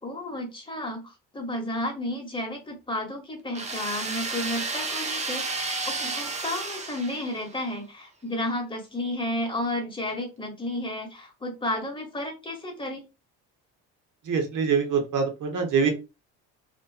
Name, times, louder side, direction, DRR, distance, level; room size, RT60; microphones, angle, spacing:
voice 1, 0.0-13.0, left 1 dB, 15° left, 2 dB, 1.0 m, -32 dB
sound 1, 3.5-7.6, right 3 dB, 20° right, 0.5 m, -32 dB
voice 2, 14.2-15.9, right 5 dB, 50° right, 3 dB, 0.9 m, -24 dB
2.4 x 2.2 x 2.3 m, 0.27 s
supercardioid pair, 75°, 39 cm